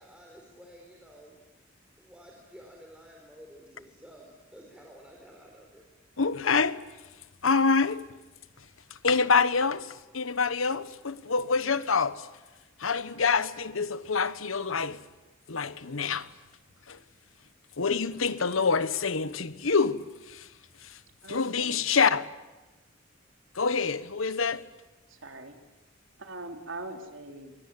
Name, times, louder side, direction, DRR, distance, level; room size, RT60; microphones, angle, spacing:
voice 1, 0.0-1.4 2.0-5.9, equal, 5° right, 4.2 m, -51 dB
voice 2, 6.2-6.8 7.4-8.1 9.0-12.3 12.8-15.0 15.5-16.3 16.9-17.0 17.8-20.5 21.3-22.3 23.5-24.7, left 5 dB, 85° left, 1.2 m, -26 dB
voice 3, 21.2-21.8 25.2-25.6 26.2-27.5, right 2 dB, 75° right, 3.3 m, -41 dB
24.0 x 24.0 x 9.5 m
head